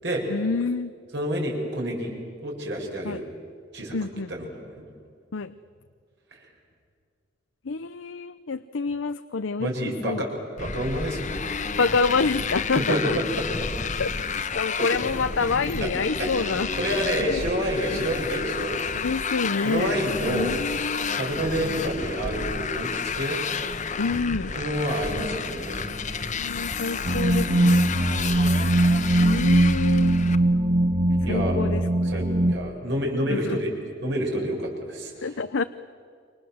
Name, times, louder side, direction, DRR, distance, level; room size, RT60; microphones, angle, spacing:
voice 1, 0.3-0.9 3.0-3.2 3.9-4.5 5.3-5.5 7.6-10.3 11.8-13.1 14.0-16.7 17.2-18.0 18.9-20.0 20.3-21.2 24.0-24.5 26.3-27.9 29.2-30.2 31.3-32.2 33.3-33.6 35.2-35.6, left 4 dB, 85° left, 11 dB, 0.7 m, -28 dB
voice 2, 1.1-2.1 2.4-3.3 3.7-4.0 4.3-4.9 6.3-6.4 9.6-11.5 12.7-13.2 13.7-13.8 15.8-15.9 16.2-19.0 19.6-20.5 21.1-23.4 24.4-26.2 28.1-28.6 31.2-31.6 32.0-33.7 34.0-35.4, right 1 dB, 65° right, 0 dB, 7.1 m, -29 dB
Motorcycle, 10.6-30.3, left 5 dB, 40° left, 1.2 m, -31 dB
sound 1, 27.0-32.5, right 1 dB, 50° right, 1.8 m, -21 dB
29.0 x 25.5 x 7.9 m, 2.2 s
head